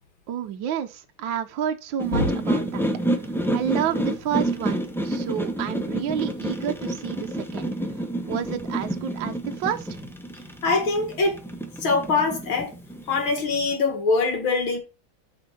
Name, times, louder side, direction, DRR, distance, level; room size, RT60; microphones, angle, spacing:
voice 1, 0.3-2.9 3.5-10.0, right 9 dB, 75° right, 1.5 m, -30 dB
sound 1, 2.0-13.7, right 1 dB, ahead, 0.5 m, -29 dB
voice 2, 10.6-11.4 11.8-12.7 13.1-14.8, left 3 dB, 80° left, 2.7 m, -23 dB
8.0 x 5.0 x 4.2 m
omnidirectional pair, 2.2 m